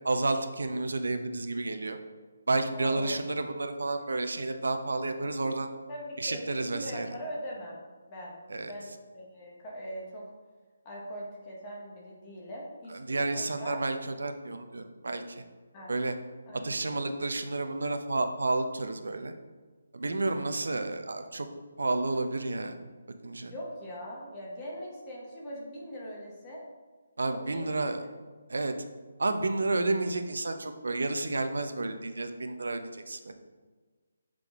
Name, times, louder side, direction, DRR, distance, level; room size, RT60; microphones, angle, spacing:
voice 1, 0.0-2.0 2.5-5.7 6.2-7.1 8.5-8.7 13.1-15.4 15.9-16.1 16.6-19.3 19.9-21.5 21.8-22.8 23.2-23.5 27.2-28.0 28.5-28.7 29.2-33.3, right 2 dB, 90° right, 7 dB, 0.7 m, -31 dB
voice 2, 2.7-3.2 5.9-7.8 8.1-8.3 8.6-10.2 10.8-13.8 15.7-15.9 16.5-17.1 23.5-26.6 27.3-28.1, equal, 15° left, -3 dB, 0.9 m, -41 dB
7.6 x 3.8 x 3.6 m, 1.4 s
hypercardioid pair, 175°, 0 cm